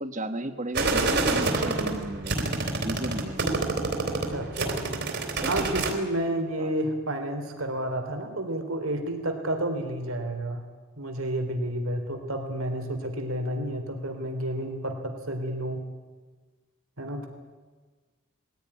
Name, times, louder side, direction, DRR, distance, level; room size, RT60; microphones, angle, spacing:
voice 1, 0.0-2.4 2.8-3.4 5.3-5.7 6.6-6.7, right 1 dB, 35° right, 8 dB, 1.6 m, -34 dB
sound 1, 0.7-5.9, right 3 dB, 55° right, 3.5 m, -27 dB
voice 2, 4.3-4.8 5.5-10.6 11.0-15.8 17.0-17.3, right 1 dB, 85° right, 5 dB, 3.4 m, -30 dB
21.0 x 16.0 x 10.0 m, 1.4 s
head